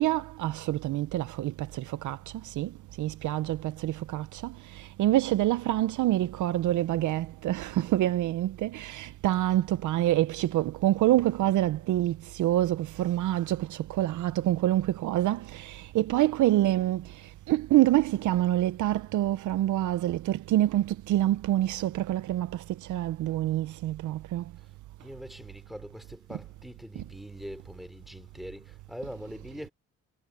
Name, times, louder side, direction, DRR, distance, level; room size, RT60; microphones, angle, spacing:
voice 1, 0.0-24.5 26.3-26.4 27.0-27.1, right 14 dB, 80° right, 0.8 m, -27 dB
voice 2, 25.0-29.7, equal, ahead, 3.7 m, -43 dB
cardioid pair, 90°, 30 cm